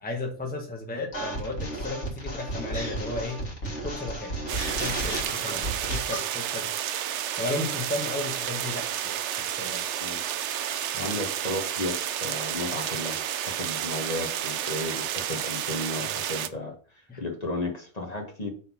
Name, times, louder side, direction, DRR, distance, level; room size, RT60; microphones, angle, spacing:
voice 1, 0.0-3.4 3.8-4.3 4.8-5.6 5.9-6.7 7.4-9.1 9.6-9.9 16.0-16.1 17.1-17.2, left 2 dB, 10° left, 1 dB, 1.1 m, -34 dB
sound 1, 1.1-6.3, right 1 dB, 80° left, 2.1 m, -33 dB
sound 2, 4.5-16.5, right 10 dB, 75° right, 0.9 m, -31 dB
voice 2, 10.9-18.5, left 2 dB, 35° left, 1 dB, 1.5 m, -34 dB
6.2 x 3.9 x 5.9 m, 0.42 s
omnidirectional pair, 1.2 m